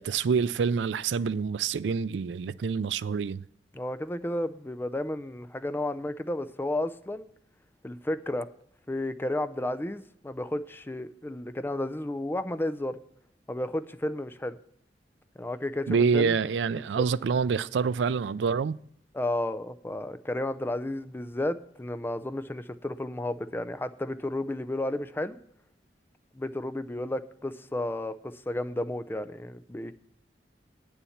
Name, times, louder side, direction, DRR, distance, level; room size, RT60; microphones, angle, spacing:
voice 1, 0.0-3.4 15.9-18.8, right 5 dB, 85° right, 0.4 m, -26 dB
voice 2, 3.7-7.3 7.8-8.5 8.9-13.0 13.5-14.6 15.4-16.4 16.7-17.0 19.1-25.4 26.3-29.9, left 1 dB, 15° left, 0.5 m, -32 dB
9.3 x 7.0 x 7.2 m
head